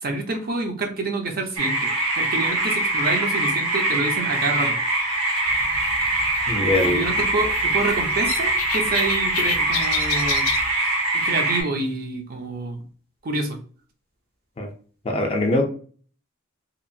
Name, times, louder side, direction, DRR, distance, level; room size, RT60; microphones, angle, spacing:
voice 1, 0.0-4.8 6.8-10.5 11.1-12.8 13.2-13.6, right 2 dB, 45° right, 4 dB, 0.5 m, -27 dB
sound 1, 1.6-11.6, right 2 dB, 75° right, 1.0 m, -23 dB
sound 2, 5.5-10.7, left 7 dB, 90° left, 0.4 m, -32 dB
voice 2, 6.5-7.1 14.6-14.7 15.1-15.6, left 1 dB, 30° left, 4 dB, 0.4 m, -22 dB
2.8 x 2.4 x 2.6 m, 0.43 s
head